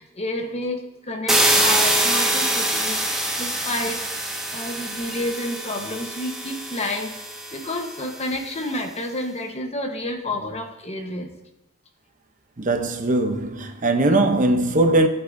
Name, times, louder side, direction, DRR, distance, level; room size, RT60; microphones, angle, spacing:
voice 1, 0.0-4.0 4.5-7.1 7.5-11.3, left 1 dB, 30° left, 1.1 m, -30 dB
sound 1, 1.3-8.1, right 1 dB, ahead, 1.5 m, -24 dB
voice 2, 12.6-15.1, right 2 dB, 40° right, 0.8 m, -20 dB
18.5 x 8.0 x 2.7 m
head